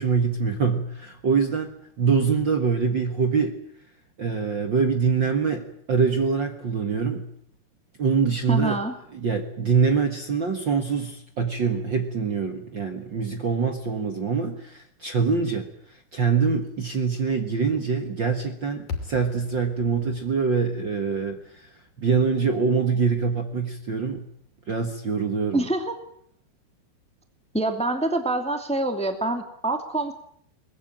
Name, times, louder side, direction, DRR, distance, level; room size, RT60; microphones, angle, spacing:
voice 1, 0.0-3.5 4.2-7.2 8.0-8.8 9.1-24.2 24.7-25.6, right 5 dB, 85° right, 5 dB, 1.0 m, -24 dB
voice 2, 8.5-8.9 25.5-25.9 27.5-30.1, right 2 dB, 5° left, 6 dB, 1.2 m, -26 dB
sound 1, 18.9-23.2, left 4 dB, 50° left, 3.8 m, -41 dB
22.0 x 20.5 x 8.8 m, 0.67 s
omnidirectional pair, 4.8 m